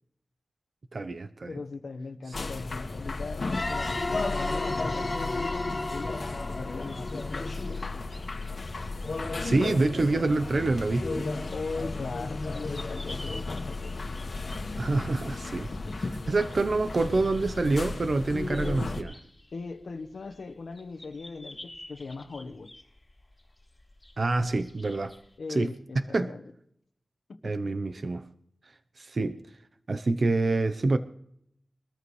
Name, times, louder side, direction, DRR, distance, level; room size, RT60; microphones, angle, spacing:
voice 1, 0.9-1.6 9.4-11.2 14.8-15.7 16.3-19.2 24.2-25.1 25.5-25.7 25.9-26.3 27.4-28.2 29.0-29.4 29.9-31.0, right 2 dB, 60° right, 0.8 m, -26 dB
voice 2, 1.5-7.9 11.5-14.1 15.7-16.0 19.5-22.7 25.4-26.4 27.3-27.5, left 4 dB, 85° left, 1.2 m, -39 dB
sound 1, 2.3-19.0, left 3 dB, 65° left, 1.7 m, -34 dB
sound 2, 3.5-8.1, left 2 dB, 40° left, 1.4 m, -34 dB
sound 3, 6.8-25.4, left 1 dB, 25° left, 5.0 m, -52 dB
23.0 x 13.5 x 3.3 m
cardioid pair, 50°, 0 cm